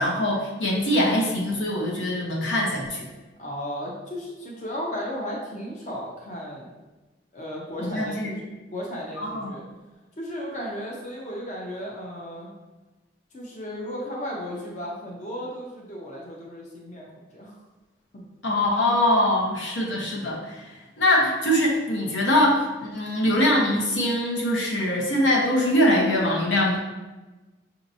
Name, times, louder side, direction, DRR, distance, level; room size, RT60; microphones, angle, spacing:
voice 1, 0.0-3.1 7.8-8.3 9.3-9.5 18.4-20.6 21.0-26.8, left 1 dB, 85° left, -2 dB, 0.9 m, -23 dB
voice 2, 3.4-6.7 7.3-8.4 8.7-9.6 10.2-12.5 13.3-17.5 18.1-18.2, equal, 40° left, -3 dB, 0.6 m, -35 dB
5.9 x 2.8 x 2.7 m, 1.2 s
head